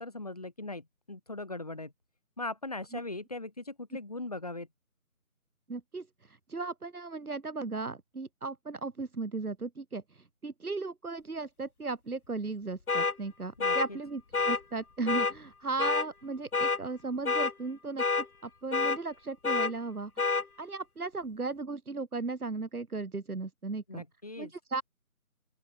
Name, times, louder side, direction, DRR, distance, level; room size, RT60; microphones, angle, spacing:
voice 1, 0.0-1.9 2.4-4.7 13.6-14.0 23.9-24.5, left 2 dB, 25° left, 1.7 m, -39 dB
voice 2, 5.7-24.0 24.4-24.8, right 3 dB, 75° right, 2.0 m, -36 dB
sound 1, 12.9-13.1 13.6-13.9 14.3-14.6 15.1-15.3 15.8-16.1 16.5-16.8 17.3-17.5 18.0-18.3 18.7-19.0 19.4-19.7 20.2-20.4, left 4 dB, 70° left, 1.6 m, -27 dB
open air
figure-of-eight pair, 175°, 45 cm